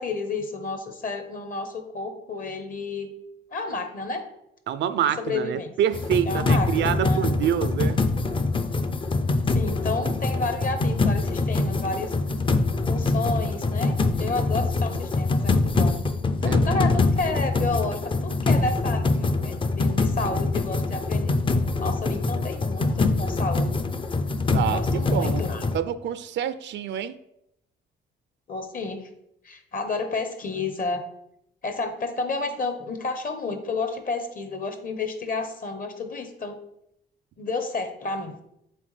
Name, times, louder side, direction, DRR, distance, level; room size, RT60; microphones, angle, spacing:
voice 1, 0.0-3.1 3.5-4.3 5.2-5.7 6.3-7.2 9.5-12.1 12.9-16.0 16.4-21.4 21.8-23.9 24.7-25.6 28.5-29.1 29.4-31.0 31.6-36.6 37.4-38.4, left 3 dB, 45° left, 7 dB, 0.9 m, -31 dB
voice 2, 4.7-8.0 16.5-16.8 24.5-25.4 25.7-27.1, right 9 dB, 65° right, 13 dB, 0.4 m, -26 dB
sound 1, 5.9-25.8, left 3 dB, 25° left, 0.5 m, -24 dB
7.6 x 3.8 x 3.3 m, 0.80 s
cardioid pair, 90°, 20 cm